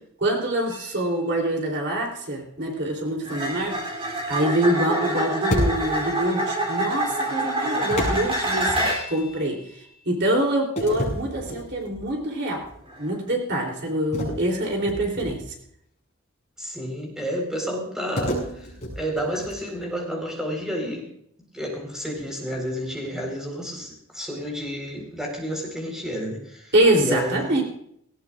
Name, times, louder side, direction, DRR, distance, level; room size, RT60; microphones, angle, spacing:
voice 1, 0.2-9.6 10.0-12.7 13.0-15.4 26.7-27.6, right 1 dB, 55° right, 1 dB, 3.4 m, -25 dB
sound 1, 0.7-0.9 3.2-9.2 12.9-13.1, right 1 dB, 25° right, 3.4 m, -27 dB
sound 2, 5.5-6.2 7.9-9.3 10.8-12.1 12.6-12.8 14.1-15.6 18.2-19.8, equal, 35° left, 6.5 m, -30 dB
voice 2, 16.6-18.7 19.0-21.1 21.5-27.6, equal, 5° right, 0 dB, 4.4 m, -31 dB
19.0 x 18.5 x 2.5 m, 0.70 s
head